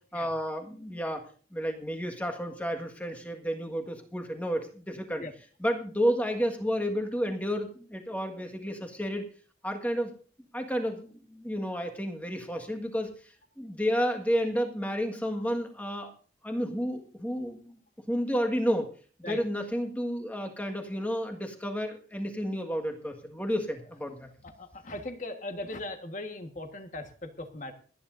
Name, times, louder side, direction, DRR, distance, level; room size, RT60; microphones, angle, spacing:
voice 1, 0.1-1.2 1.5-5.2 5.6-9.3 9.6-10.1 10.5-13.1 13.6-16.1 16.4-17.8 18.1-18.9 19.2-24.3, equal, 10° left, 4 dB, 1.6 m, -31 dB
voice 2, 24.4-27.7, left 2 dB, 40° left, 6 dB, 1.5 m, -39 dB
27.5 x 10.0 x 2.6 m, 0.40 s
head